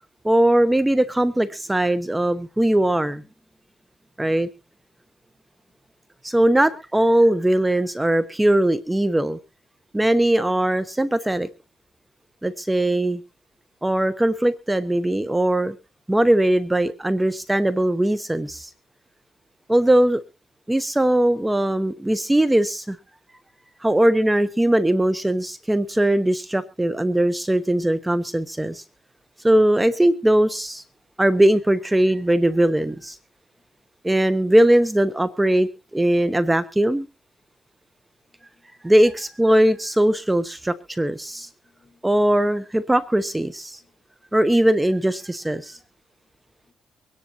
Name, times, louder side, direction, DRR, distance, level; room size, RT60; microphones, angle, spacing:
voice 1, 0.2-3.2 4.2-4.5 6.2-9.4 9.9-11.5 12.4-13.2 13.8-15.7 16.1-18.7 19.7-20.2 20.7-23.0 23.8-28.8 29.4-30.8 31.2-33.2 34.0-37.1 38.8-41.5 42.0-43.8 44.3-45.8, right 1 dB, 10° right, 14 dB, 0.9 m, -20 dB
voice 2, 38.3-38.7 41.3-42.5 43.8-43.9 45.7-45.8 46.7-46.8, left 4 dB, 50° left, 5 dB, 5.7 m, -62 dB
24.0 x 10.5 x 2.8 m, 0.30 s
cardioid pair, 90°, 0 cm